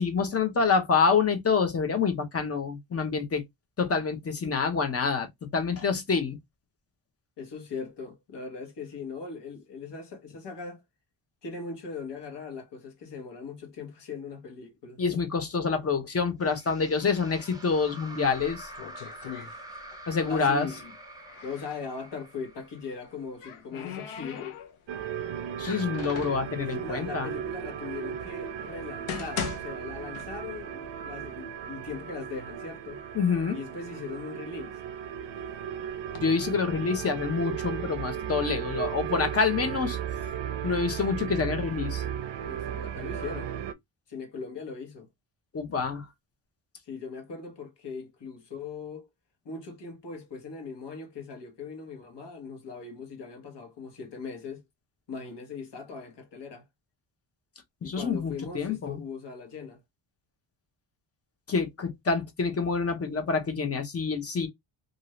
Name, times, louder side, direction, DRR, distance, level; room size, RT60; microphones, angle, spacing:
voice 1, 0.0-3.4 3.8-6.4 15.0-18.7 20.1-20.7 25.6-27.3 33.1-33.6 36.2-40.0 40.6-42.0 45.5-46.1 57.8-59.0 61.5-64.5, left 5 dB, 30° left, 0.7 m, -27 dB
voice 2, 7.4-10.8 11.4-15.0 20.3-20.9 21.4-24.6 26.5-33.0 33.5-34.8 42.4-43.6 44.1-45.1 46.8-49.1 49.4-54.6 55.1-56.6 57.8-59.8, left 5 dB, 55° left, 1.3 m, -39 dB
sound 1, 16.5-23.7, right 1 dB, 10° right, 0.6 m, -46 dB
sound 2, 18.2-20.1 20.4-21.8 22.9-25.0 25.5-26.5 27.3-27.4 28.0-28.1 28.7-30.7 31.1-31.2 31.9-32.0 32.3-33.0 33.5-35.2 35.8-36.2, left 7 dB, 80° left, 0.8 m, -40 dB
sound 3, 24.9-43.7, right 9 dB, 60° right, 0.6 m, -35 dB
2.6 x 2.6 x 3.0 m
wide cardioid pair, 155°, 50 cm